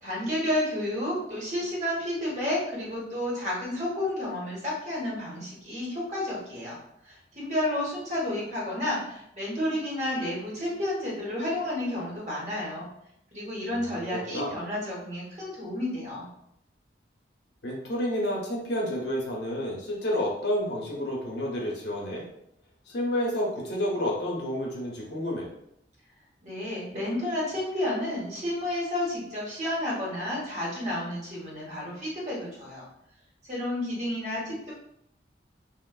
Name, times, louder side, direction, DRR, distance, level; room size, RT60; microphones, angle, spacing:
voice 1, 0.0-6.8 7.0-12.9 13.3-16.3 26.4-32.8 33.4-34.7, left 1 dB, 40° right, -5 dB, 0.9 m, -31 dB
voice 2, 13.8-14.6 17.6-22.2 22.9-25.5, left 1 dB, 70° left, -3 dB, 0.7 m, -30 dB
3.0 x 2.0 x 2.2 m, 0.76 s
head